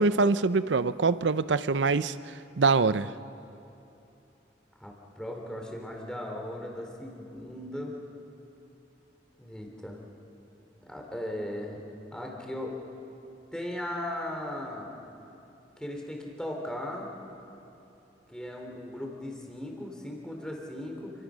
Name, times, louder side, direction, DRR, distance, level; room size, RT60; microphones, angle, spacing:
voice 1, 0.0-2.1 2.6-3.1, right 4 dB, 90° right, 14 dB, 0.6 m, -24 dB
voice 2, 4.8-7.9 9.4-10.0 10.9-11.8 12.1-12.8 13.5-14.9 15.8-17.1 18.3-21.1, left 1 dB, 5° left, 1 dB, 3.3 m, -37 dB
29.0 x 24.0 x 6.3 m, 2.9 s
head